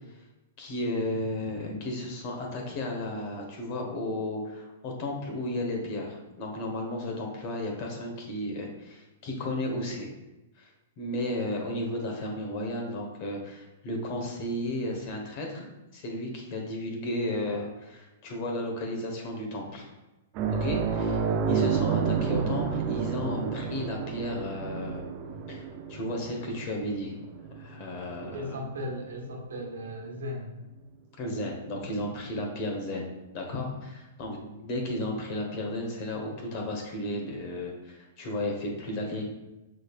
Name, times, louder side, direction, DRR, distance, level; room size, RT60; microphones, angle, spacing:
voice 1, 0.6-10.1 10.6-10.7 11.0-15.7 15.9-19.9 20.5-21.2 21.5-25.1 25.5-25.6 25.9-27.1 27.6-28.6 31.2-33.1 33.3-39.2, left 1 dB, 45° left, 1 dB, 1.2 m, -33 dB
sound 1, 20.4-29.3 29.6-29.8 31.9-32.0, right 6 dB, 40° right, 0.5 m, -30 dB
voice 2, 28.2-30.6, equal, 85° right, 1 dB, 1.0 m, -37 dB
6.2 x 3.3 x 2.4 m, 1.0 s
hypercardioid pair, 135°, 0 cm